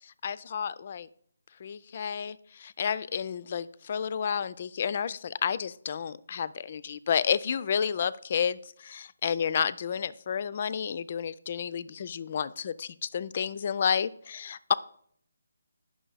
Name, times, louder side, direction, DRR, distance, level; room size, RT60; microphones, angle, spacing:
voice 1, 0.2-1.1 1.6-14.7, left 7 dB, 35° left, 0.3 m, -31 dB
9.1 x 6.1 x 4.0 m
hypercardioid pair, 170°, 0 cm